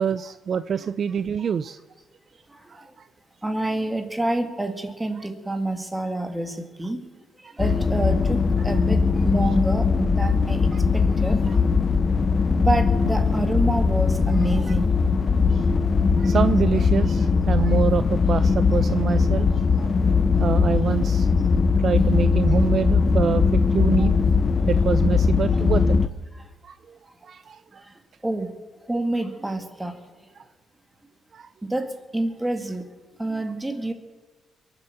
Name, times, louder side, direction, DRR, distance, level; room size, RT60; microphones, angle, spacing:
voice 1, 0.0-1.8 2.7-3.1 11.5-11.6 14.7-14.8 15.5-15.7 16.0-20.1 20.4-21.3 21.8-24.1 24.7-26.0 26.6-27.8 31.3-31.5, right 7 dB, 50° right, 13 dB, 0.4 m, -26 dB
voice 2, 3.4-7.0 7.6-11.4 12.6-14.9 28.2-28.5 28.9-29.9 31.6-32.8 33.2-33.9, right 1 dB, 10° right, 6 dB, 2.0 m, -27 dB
sound 1, 7.6-26.1, left 5 dB, 40° left, 0.8 m, -20 dB
22.5 x 8.1 x 6.8 m, 1.3 s
cardioid pair, 90°, 0 cm